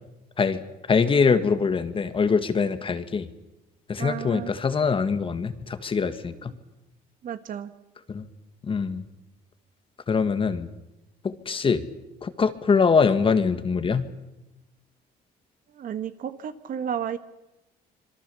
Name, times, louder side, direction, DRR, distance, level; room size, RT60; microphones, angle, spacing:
voice 1, 0.9-3.3 3.9-6.5 8.1-8.3 8.6-9.1 10.1-10.7 11.2-11.8 12.2-14.1, left 5 dB, 30° left, 10 dB, 1.8 m, -23 dB
voice 2, 4.0-4.5 7.2-7.7 15.7-17.2, right 8 dB, 55° right, 11 dB, 1.6 m, -32 dB
26.5 x 22.5 x 7.0 m, 0.96 s
cardioid pair, 110°, 17 cm